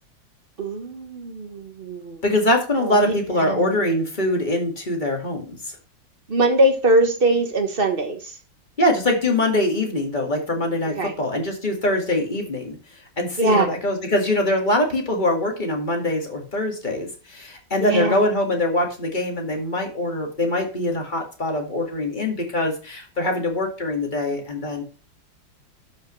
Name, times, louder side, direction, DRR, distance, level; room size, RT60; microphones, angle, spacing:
voice 1, 0.6-2.2 2.8-3.8 6.3-8.4 11.0-11.1 13.4-13.7 17.8-18.3, right 1 dB, 35° right, 6 dB, 1.1 m, -22 dB
voice 2, 2.2-5.7 8.8-12.8 13.2-24.8, left 1 dB, 25° left, 1 dB, 2.0 m, -23 dB
12.0 x 5.8 x 3.1 m, 0.37 s
omnidirectional pair, 2.1 m